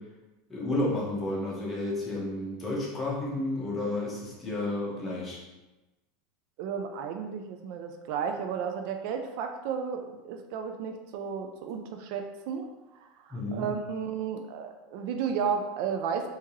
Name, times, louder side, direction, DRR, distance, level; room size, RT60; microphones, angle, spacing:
voice 1, 0.5-5.4 13.3-13.6, left 2 dB, 20° left, -5 dB, 1.2 m, -31 dB
voice 2, 6.6-12.7 13.0-16.3, right 7 dB, 60° right, 5 dB, 0.4 m, -33 dB
3.5 x 2.8 x 3.0 m, 1.1 s
supercardioid pair, 130°, 0 cm